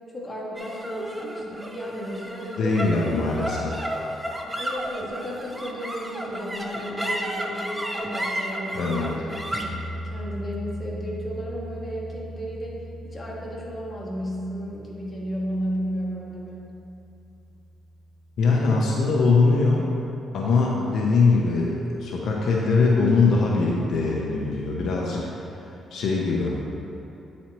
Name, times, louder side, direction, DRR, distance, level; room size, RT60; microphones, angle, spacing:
voice 1, 0.1-2.8 4.6-8.9 9.6-12.8 13.0-16.7, equal, 25° left, -4 dB, 1.4 m, -33 dB
sound 1, 0.6-17.1, equal, 10° right, 0.5 m, -34 dB
voice 2, 2.6-3.8 8.7-9.1 18.4-19.9 20.3-25.3 25.9-26.6, left 4 dB, 65° left, -3 dB, 0.7 m, -22 dB
8.9 x 4.2 x 3.0 m, 2.8 s
cardioid pair, 90°, 0 cm